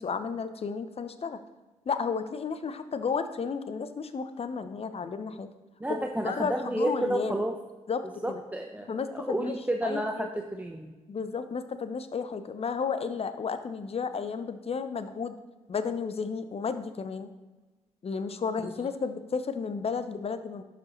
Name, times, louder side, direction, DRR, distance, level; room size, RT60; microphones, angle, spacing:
voice 1, 0.0-1.4 1.9-5.5 5.9-7.3 7.9-8.4 8.9-9.6 9.8-10.3 11.1-15.3 15.7-17.3 18.0-20.6, left 5 dB, 40° left, 11 dB, 0.7 m, -33 dB
voice 2, 5.8-7.6 8.2-10.9, right 1 dB, 10° right, 2 dB, 0.8 m, -31 dB
11.5 x 5.0 x 3.1 m, 1.2 s
hypercardioid pair, 45°, 16 cm